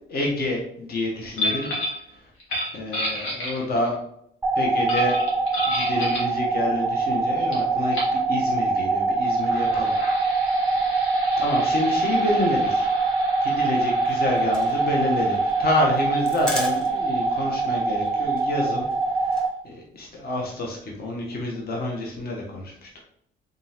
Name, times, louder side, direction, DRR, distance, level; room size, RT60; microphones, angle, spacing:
voice 1, 0.0-1.7 2.1-2.3 2.7-3.9 4.6-5.2 5.6-10.0 11.4-12.9 13.4-18.9 19.1-23.0, left 2 dB, 50° left, -1 dB, 1.1 m, -28 dB
sound 1, 1.4-2.0 2.4-3.9 4.9-6.3 7.5-7.6 7.9-8.2 9.2-18.5, left 1 dB, 80° left, 1.6 m, -33 dB
sound 2, 4.4-19.5, right 3 dB, 20° right, 0.6 m, -24 dB
sound 3, 13.9-17.3 17.5-17.6 17.9-18.1 18.4-19.5, equal, 5° left, 1.1 m, -35 dB
3.8 x 3.7 x 2.9 m, 0.71 s
cardioid pair, 90°, 20 cm